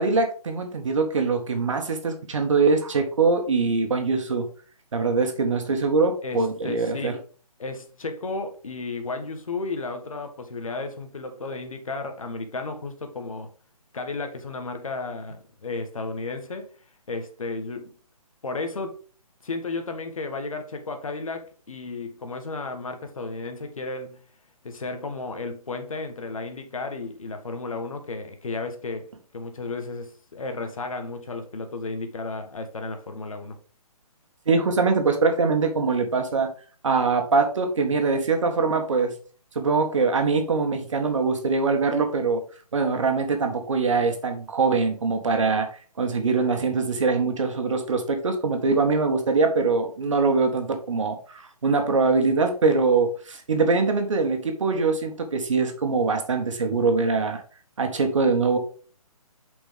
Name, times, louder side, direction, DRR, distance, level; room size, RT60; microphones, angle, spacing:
voice 1, 0.0-4.5 4.9-7.1 34.4-36.5 36.8-39.1 39.5-42.4 42.7-45.7 46.0-57.4 57.8-58.6, right 4 dB, 55° right, 1.7 m, -23 dB
voice 2, 6.2-7.2 7.6-13.5 13.9-16.7 17.1-17.9 18.4-19.0 19.4-24.3 24.6-33.6, left 3 dB, 65° left, 1.6 m, -33 dB
7.0 x 5.2 x 3.7 m
figure-of-eight pair, 140°, 19 cm